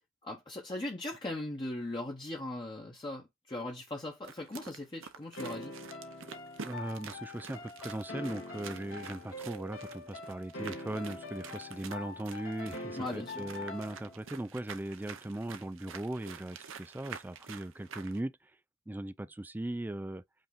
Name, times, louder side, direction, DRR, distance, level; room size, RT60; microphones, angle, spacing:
voice 1, 0.2-5.7 13.0-13.5, left 1 dB, 25° left, 0.9 m, -39 dB
sound 1, 4.2-18.2, right 6 dB, 65° right, 0.7 m, -48 dB
sound 2, 5.4-14.3, left 2 dB, 75° left, 1.7 m, -44 dB
voice 2, 6.6-18.3 18.9-20.2, right 1 dB, 10° right, 0.3 m, -39 dB
5.4 x 2.7 x 3.6 m
head